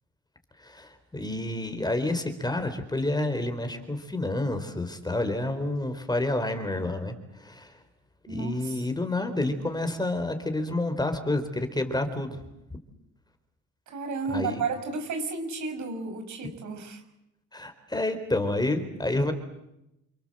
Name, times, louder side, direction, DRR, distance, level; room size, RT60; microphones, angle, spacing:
voice 1, 0.6-7.8 8.3-12.4 14.3-14.6 17.5-19.3, left 2 dB, 15° left, 7 dB, 4.2 m, -29 dB
voice 2, 8.3-8.8 13.9-17.0, right 4 dB, 75° right, 6 dB, 5.7 m, -32 dB
28.0 x 25.0 x 7.9 m, 0.87 s
cardioid pair, 90°, 30 cm